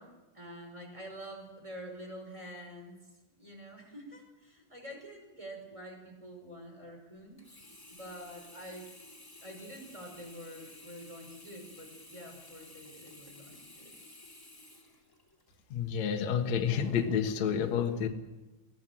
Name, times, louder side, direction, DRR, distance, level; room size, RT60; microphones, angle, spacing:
voice 1, 0.0-3.0 3.4-7.4 7.9-8.9 9.4-14.0, equal, 5° right, 2 dB, 5.0 m, -47 dB
Sink (filling or washing), 7.4-15.6 16.2-16.3, left 1 dB, 20° left, 0.6 m, -53 dB
voice 2, 15.7-18.1, left 7 dB, 60° left, 3 dB, 1.9 m, -29 dB
22.5 x 16.5 x 7.8 m, 1.1 s
omnidirectional pair, 5.6 m